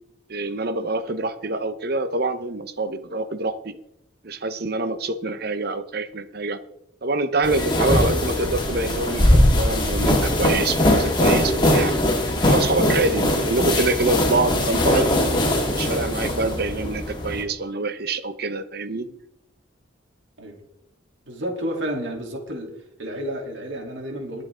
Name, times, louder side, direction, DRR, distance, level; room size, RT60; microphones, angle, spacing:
voice 1, 0.3-3.8 4.2-6.6 7.0-11.9 12.4-15.2 15.7-19.2, right 2 dB, 50° right, 11 dB, 0.9 m, -25 dB
sound 1, 7.4-17.4, left 1 dB, 25° left, 2.2 m, -21 dB
voice 2, 21.3-22.7 23.0-24.4, equal, 70° right, 1 dB, 3.3 m, -31 dB
21.5 x 7.8 x 3.8 m, 0.79 s
head